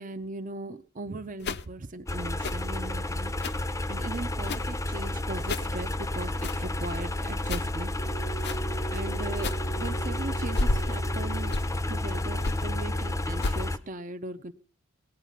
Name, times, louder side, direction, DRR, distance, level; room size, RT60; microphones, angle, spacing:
voice 1, 0.0-7.9 8.9-11.5 11.9-14.5, right 2 dB, 40° right, 7 dB, 0.7 m, -38 dB
sound 1, 1.4-1.6 2.4-2.7 3.4-3.7 4.4-4.8 5.4-5.7 6.4-6.7 7.4-7.7 8.4-8.7 9.4-9.7 10.4-11.0 11.4-11.8 12.4-12.7 13.4-13.7, left 2 dB, 55° left, 0.7 m, -32 dB
sound 2, 2.1-13.8, left 1 dB, 15° left, 0.7 m, -31 dB
sound 3, 7.9-11.9, right 9 dB, 90° left, 1.4 m, -41 dB
18.5 x 9.2 x 5.7 m, 0.41 s
head